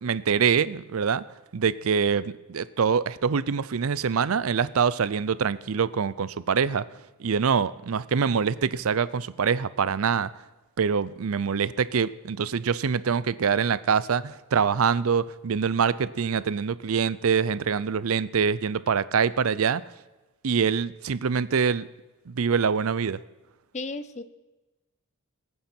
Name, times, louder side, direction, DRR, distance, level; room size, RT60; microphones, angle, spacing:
voice 1, 0.0-1.2 1.5-6.8 7.2-10.3 10.8-19.8 20.4-21.9 22.3-23.2, right 6 dB, 75° right, 18 dB, 0.5 m, -25 dB
voice 2, 23.7-24.2, left 3 dB, 35° left, 13 dB, 0.7 m, -34 dB
22.0 x 9.4 x 4.4 m, 1.1 s
head